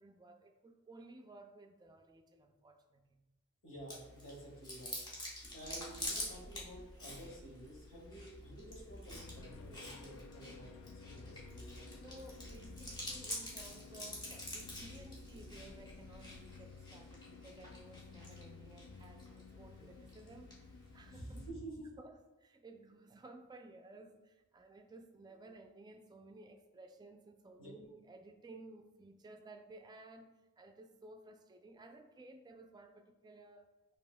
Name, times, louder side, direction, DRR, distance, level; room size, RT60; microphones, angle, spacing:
voice 1, 0.0-3.2 12.0-20.6 20.9-21.4 22.0-34.0, right 2 dB, 20° right, 5 dB, 0.3 m, -56 dB
voice 2, 3.6-5.0 5.5-10.7 11.0-11.9 21.1-21.9 27.6-27.7, right 1 dB, 60° left, -3 dB, 1.5 m, -51 dB
Chewing mastication, 3.9-21.5, left 1 dB, 20° left, 1.1 m, -48 dB
sound 1, 5.4-17.2, equal, 35° left, 0.7 m, -56 dB
sound 2, 9.1-21.7, left 5 dB, 85° left, 0.4 m, -55 dB
6.8 x 2.8 x 2.2 m, 1.1 s
head